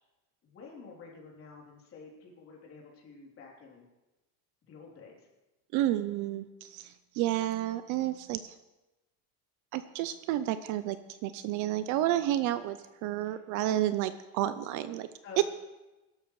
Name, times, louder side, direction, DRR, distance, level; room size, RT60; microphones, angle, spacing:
voice 1, 0.4-3.9 4.7-5.3 13.2-13.4 15.2-15.4, left 4 dB, 35° left, -2 dB, 3.3 m, -50 dB
voice 2, 5.7-8.5 9.7-11.0 11.2-15.1, right 13 dB, 50° right, 12 dB, 0.5 m, -31 dB
22.0 x 12.0 x 3.1 m, 1.1 s
cardioid pair, 165°, 41 cm